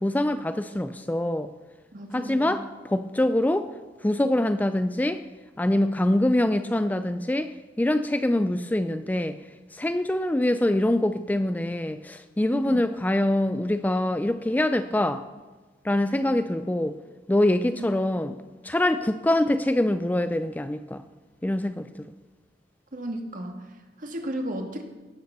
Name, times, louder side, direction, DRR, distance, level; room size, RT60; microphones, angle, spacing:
voice 1, 0.0-1.5 2.1-3.7 4.0-5.2 5.6-7.5 7.8-9.4 9.7-15.2 15.8-16.9 17.3-18.4 18.6-21.0 21.4-21.9, left 1 dB, 10° left, 10 dB, 0.3 m, -24 dB
voice 2, 1.9-2.5 12.5-12.8 17.8-17.9 22.9-24.8, right 1 dB, 50° right, 4 dB, 1.7 m, -34 dB
17.0 x 6.9 x 6.7 m, 1.2 s
head